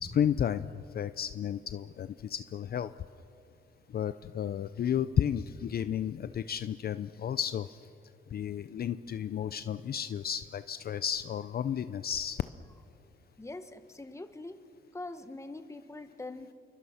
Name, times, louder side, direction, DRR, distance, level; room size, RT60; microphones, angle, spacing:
voice 1, 0.0-2.9 3.9-7.8 8.3-12.4, left 9 dB, 50° left, 12 dB, 0.6 m, -32 dB
voice 2, 13.4-14.7 14.9-16.5, left 2 dB, 15° left, 9 dB, 1.4 m, -43 dB
28.5 x 24.0 x 5.8 m, 2.6 s
cardioid pair, 90°, 20 cm